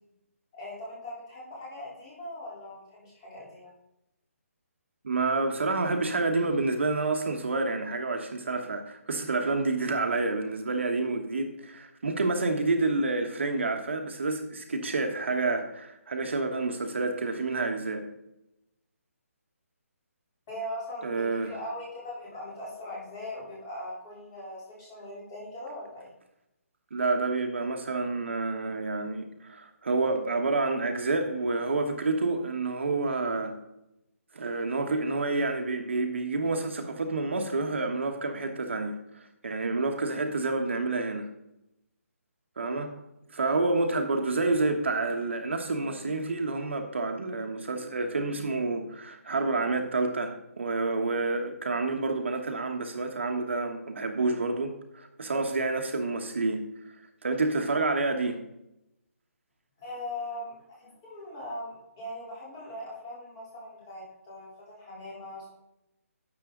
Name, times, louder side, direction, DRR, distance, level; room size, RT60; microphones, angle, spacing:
voice 1, 0.5-3.7 20.5-26.1 45.8-46.1 59.8-65.5, left 1 dB, 15° left, -5 dB, 3.7 m, -40 dB
voice 2, 5.0-18.1 21.0-21.5 26.9-33.5 34.3-41.3 42.6-42.9 43.3-56.6 57.2-58.4, right 3 dB, 50° right, 4 dB, 1.3 m, -29 dB
12.0 x 8.3 x 3.9 m, 0.87 s
hypercardioid pair, 180°, 8 cm